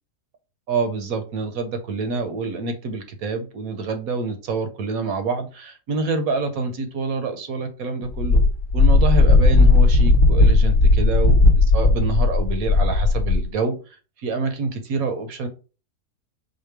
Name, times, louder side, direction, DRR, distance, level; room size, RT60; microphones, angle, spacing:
voice 1, 0.7-8.4 8.7-13.8 14.2-15.5, right 4 dB, 65° right, 1.2 m, -27 dB
Wind, 8.1-13.5, left 3 dB, 55° left, 1.1 m, -15 dB
5.1 x 2.3 x 4.6 m
omnidirectional pair, 1.7 m